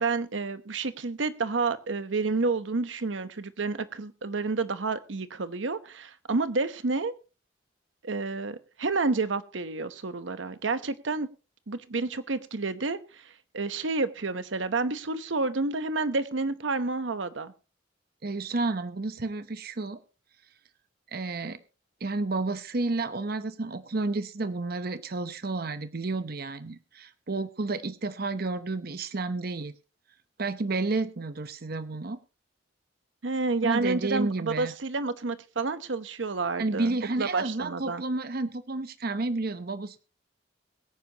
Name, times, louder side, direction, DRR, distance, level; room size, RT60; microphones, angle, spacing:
voice 1, 0.0-7.1 8.0-11.3 11.7-17.5 33.2-38.0, right 3 dB, 85° right, 12 dB, 0.9 m, -30 dB
voice 2, 18.2-20.0 21.1-21.6 22.0-29.7 30.4-32.2 33.6-34.7 36.6-40.0, right 3 dB, 55° right, 11 dB, 0.9 m, -31 dB
22.5 x 9.6 x 2.9 m, 0.33 s
head